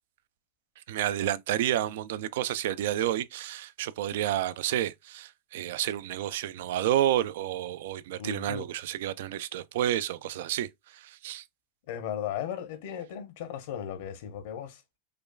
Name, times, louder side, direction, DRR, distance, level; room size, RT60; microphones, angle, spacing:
voice 1, 0.8-11.5, right 12 dB, 70° right, 0.3 m, -30 dB
voice 2, 8.2-8.7 11.9-14.8, left 9 dB, 60° left, 0.8 m, -36 dB
5.1 x 2.3 x 2.2 m
supercardioid pair, 155°, 0 cm